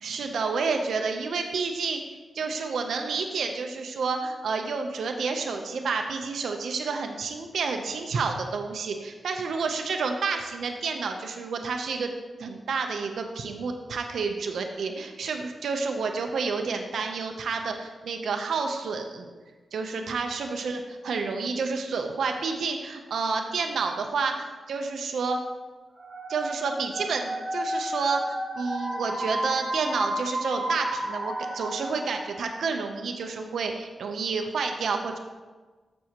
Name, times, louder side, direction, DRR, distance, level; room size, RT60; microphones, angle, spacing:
voice 1, 0.0-12.1 12.4-19.3 19.7-25.4 26.3-35.2, right 4 dB, 90° right, 4 dB, 0.8 m, -30 dB
sound 1, 26.0-32.8, right 1 dB, 15° right, 1.8 m, -32 dB
13.5 x 6.3 x 3.0 m, 1.3 s
wide cardioid pair, 145°, 0 cm